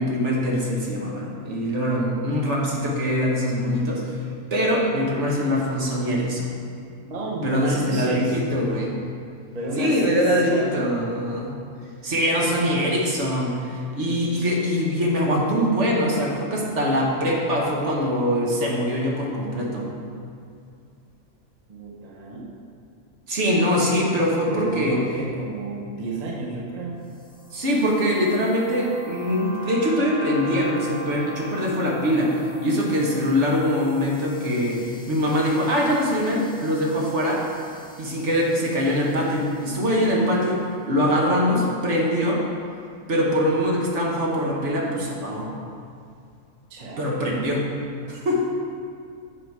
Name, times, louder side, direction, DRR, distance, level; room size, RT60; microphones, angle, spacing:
voice 1, 0.0-4.1 4.5-6.5 7.4-9.0 9.8-11.5 12.0-19.9 23.3-25.0 27.5-34.8 35.1-37.4 38.0-42.4 43.1-45.5 47.0-47.6 48.1-48.5, equal, 55° right, -3 dB, 1.4 m, -23 dB
voice 2, 7.1-8.4 9.5-11.0 21.7-22.5 24.5-27.0 46.7-47.4, right 2 dB, 30° right, -3 dB, 1.0 m, -31 dB
sound 1, 27.1-40.5, right 1 dB, 30° left, 1.1 m, -42 dB
8.1 x 5.9 x 4.6 m, 2.3 s
omnidirectional pair, 1.5 m